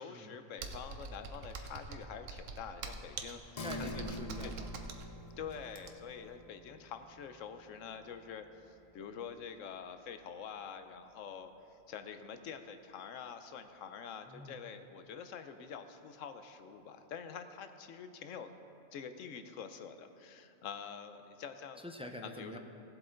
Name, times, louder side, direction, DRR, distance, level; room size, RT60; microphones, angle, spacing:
voice 1, 0.0-3.6 3.9-4.0 4.4-4.5 5.4-11.5 11.9-18.5 18.9-21.8 22.2-22.6, left 7 dB, 90° left, 9 dB, 1.1 m, -46 dB
Computer keyboard, 0.6-6.2, right 4 dB, 85° right, 1.1 m, -44 dB
sound 1, 3.6-10.6 11.0-11.1, left 1 dB, 35° left, 0.6 m, -48 dB
voice 2, 3.6-4.7 14.3-14.6 21.8-22.6, left 1 dB, 10° right, 3 dB, 0.3 m, -45 dB
17.0 x 7.6 x 3.8 m, 2.7 s
omnidirectional pair, 1.3 m